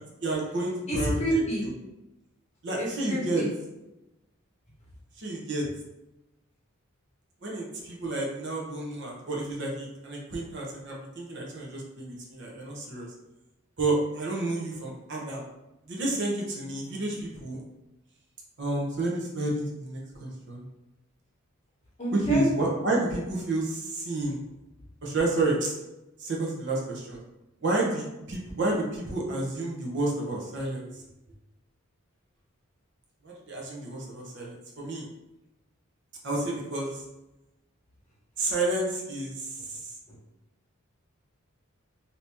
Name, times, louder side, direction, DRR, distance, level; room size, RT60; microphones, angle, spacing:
voice 1, 0.2-1.1 1.6-1.7 2.6-3.4 5.2-5.7 7.4-13.1 13.8-15.4 15.9-17.6 18.6-20.6 22.1-24.4 25.0-25.7 26.2-27.2 27.6-30.8 33.2-35.0 36.2-37.0 38.4-39.9, right 2 dB, 55° right, -3 dB, 0.7 m, -30 dB
voice 2, 0.9-1.6 2.8-3.5 22.0-22.4, right 1 dB, 30° left, -5 dB, 1.0 m, -28 dB
2.8 x 2.8 x 3.4 m, 0.96 s
head